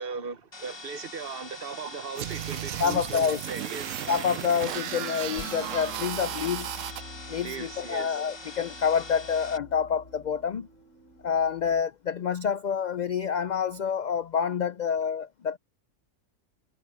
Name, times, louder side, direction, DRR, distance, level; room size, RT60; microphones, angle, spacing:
voice 1, 0.0-4.0 7.4-8.2, right 5 dB, 50° right, 1.0 m, -38 dB
sound 1, 0.5-9.6, left 3 dB, 20° left, 1.1 m, -44 dB
sound 2, 2.2-7.0, right 13 dB, 90° right, 1.0 m, -35 dB
voice 2, 2.8-3.5 4.1-6.8 7.3-10.7 11.2-15.6, left 7 dB, 65° left, 0.4 m, -27 dB
sound 3, 5.3-11.8, left 1 dB, 85° left, 4.0 m, -46 dB
omnidirectional pair, 1.3 m